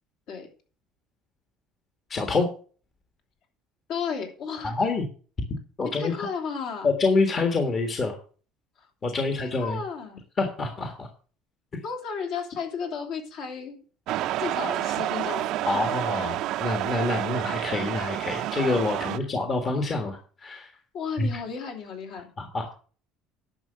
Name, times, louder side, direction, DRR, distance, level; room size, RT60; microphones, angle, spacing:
voice 1, 2.1-2.5 4.6-5.1 5.8-6.1 6.8-8.1 9.0-9.8 10.4-11.1 15.6-20.7 21.2-21.3 22.4-22.7, left 3 dB, 25° left, 4 dB, 1.5 m, -26 dB
voice 2, 3.9-4.9 6.0-6.9 7.3-7.4 8.8-8.9 9.2-10.2 11.8-13.8 14.4-15.9 20.9-22.3, left 6 dB, 55° left, 3 dB, 3.2 m, -34 dB
sound 1, 14.1-19.2, right 14 dB, 55° right, 0.6 m, -29 dB
11.0 x 6.5 x 6.5 m, 0.40 s
cardioid pair, 155°, 0 cm